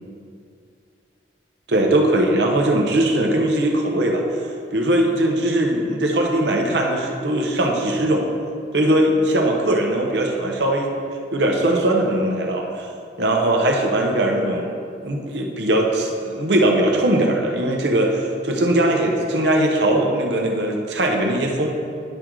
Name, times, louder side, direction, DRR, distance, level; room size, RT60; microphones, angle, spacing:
voice 1, 1.7-4.2 4.7-8.3 8.7-10.9 11.3-12.9 13.2-14.7 15.0-21.7, right 1 dB, 70° right, 1 dB, 0.9 m, -20 dB
10.0 x 4.7 x 3.8 m, 2.4 s
head